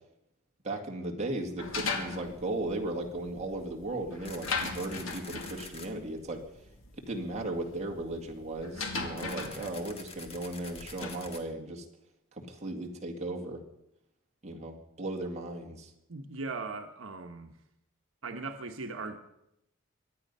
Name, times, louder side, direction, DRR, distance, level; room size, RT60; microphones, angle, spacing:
voice 1, 0.6-6.4 7.0-11.8 12.3-13.6 14.4-15.9, right 2 dB, 35° right, 2 dB, 2.0 m, -36 dB
sound 1, 1.6-11.3, left 4 dB, 80° left, 2.2 m, -39 dB
sound 2, 4.3-5.9 9.2-11.4, left 4 dB, 30° left, 1.6 m, -46 dB
voice 2, 16.1-17.5 18.2-19.2, right 3 dB, 75° right, 5 dB, 1.1 m, -38 dB
23.5 x 9.6 x 5.5 m, 0.84 s
head